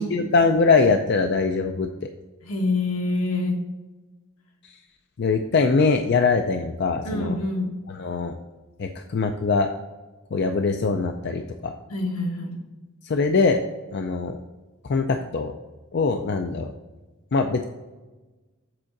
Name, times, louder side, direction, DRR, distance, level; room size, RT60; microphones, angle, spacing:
voice 1, 0.0-1.9 5.2-7.3 7.9-8.3 8.8-9.7 10.3-11.7 13.1-13.6 13.9-14.4 14.9-15.5 15.9-16.7 17.3-17.6, left 4 dB, 50° left, 5 dB, 0.4 m, -22 dB
voice 2, 2.4-3.7 7.0-7.8 11.9-12.6, left 2 dB, 80° left, 1 dB, 1.4 m, -26 dB
7.8 x 3.7 x 5.9 m, 1.2 s
head